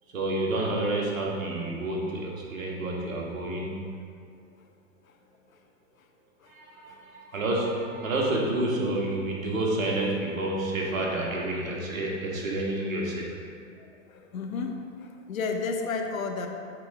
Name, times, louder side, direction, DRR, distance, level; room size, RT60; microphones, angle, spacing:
voice 1, 0.1-3.8 6.5-13.4, right 1 dB, 80° right, -2 dB, 1.7 m, -29 dB
voice 2, 13.8-16.5, left 4 dB, 85° left, 4 dB, 0.8 m, -33 dB
8.7 x 4.3 x 3.5 m, 2.3 s
hypercardioid pair, 110°, 40 cm